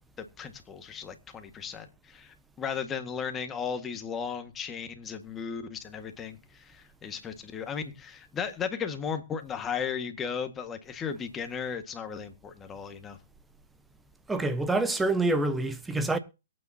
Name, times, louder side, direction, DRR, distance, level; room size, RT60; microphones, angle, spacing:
voice 1, 0.2-13.2, left 6 dB, 15° left, 1.8 m, -36 dB
voice 2, 14.3-16.2, right 2 dB, 5° right, 1.1 m, -26 dB
22.5 x 9.0 x 2.8 m
hypercardioid pair, 135°, 0 cm